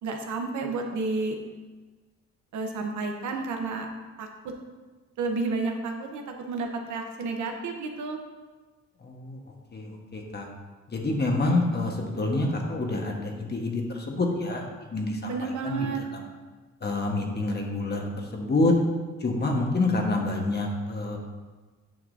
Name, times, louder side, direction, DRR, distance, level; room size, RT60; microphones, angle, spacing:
voice 1, 0.0-1.4 2.5-3.9 4.2-4.3 5.2-8.2 15.3-16.0, right 3 dB, 75° right, 3 dB, 1.0 m, -31 dB
voice 2, 9.0-9.4 9.7-10.5 10.9-14.7 14.9-16.2 16.8-18.7 19.2-21.2, left 2 dB, 35° left, 1 dB, 1.4 m, -27 dB
9.4 x 5.9 x 2.7 m, 1.3 s
cardioid pair, 90°, 30 cm